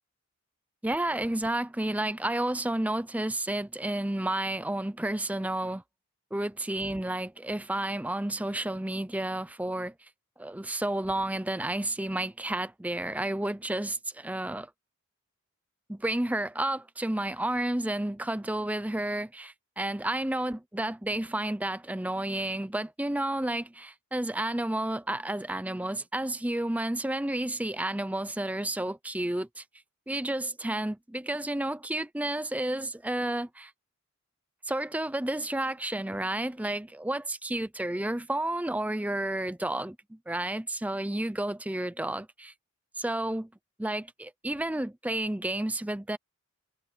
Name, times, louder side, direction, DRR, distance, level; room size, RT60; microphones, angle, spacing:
voice 1, 0.8-5.8 6.3-9.9 10.4-14.7 15.9-29.6 30.1-33.7 34.7-42.5 43.0-43.5 43.8-46.2, right 1 dB, 5° right, 0.5 m, -31 dB
head